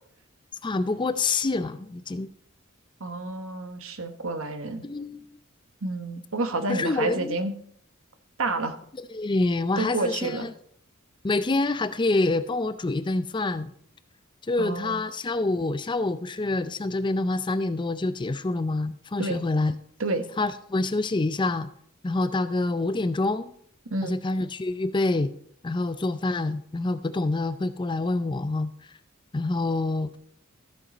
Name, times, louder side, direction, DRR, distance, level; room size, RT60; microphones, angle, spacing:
voice 1, 0.6-2.3 4.8-5.3 6.7-7.4 9.1-10.5 11.2-13.7 14.5-19.8 20.4-21.7 22.0-23.5 24.0-25.3 25.6-28.7 29.3-30.2, left 2 dB, 20° left, 12 dB, 0.4 m, -26 dB
voice 2, 3.0-4.8 5.8-7.5 8.4-8.7 9.8-10.5 14.6-15.0 19.2-19.4 20.0-20.3 23.9-24.2, right 2 dB, 70° right, 8 dB, 1.1 m, -29 dB
14.0 x 7.5 x 4.1 m, 0.66 s
head